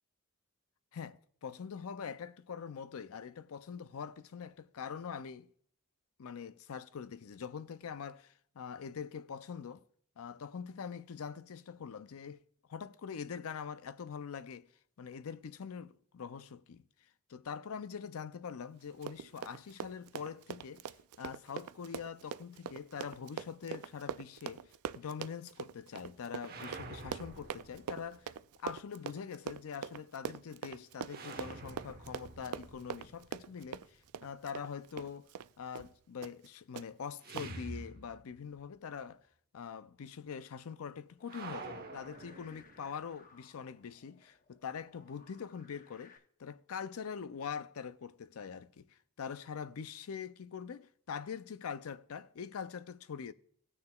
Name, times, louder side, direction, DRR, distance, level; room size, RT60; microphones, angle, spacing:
voice 1, 0.9-5.5 6.2-9.8 10.2-12.4 12.7-14.7 15.0-16.8 17.3-20.9 21.2-24.6 24.9-28.3 28.6-35.3 35.6-39.3 39.5-48.8 49.2-53.3, left 6 dB, 75° left, 0.5 m, -43 dB
Run, 18.9-35.5 35.8-35.9 36.2-36.5 36.8-36.9 37.4-37.5, right 8 dB, 85° right, 0.4 m, -43 dB
sound 1, 26.4-28.4 31.1-34.1 37.2-38.6 38.9-39.0 41.2-43.0, right 3 dB, 45° right, 1.1 m, -48 dB
sound 2, 41.2-46.2, left 4 dB, 40° left, 0.8 m, -62 dB
17.5 x 6.7 x 2.3 m
head